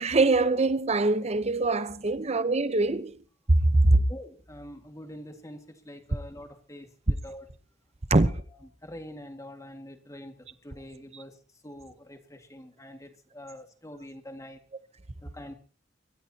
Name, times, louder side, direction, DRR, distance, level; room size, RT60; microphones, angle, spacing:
voice 1, 0.0-3.2 3.5-4.0 8.1-8.3, right 2 dB, 35° right, 0.9 m, -23 dB
voice 2, 4.0-7.5 8.2-8.3 8.8-11.4 11.6-14.6 15.2-15.5, left 1 dB, 15° left, 2.0 m, -45 dB
24.5 x 13.5 x 2.9 m
head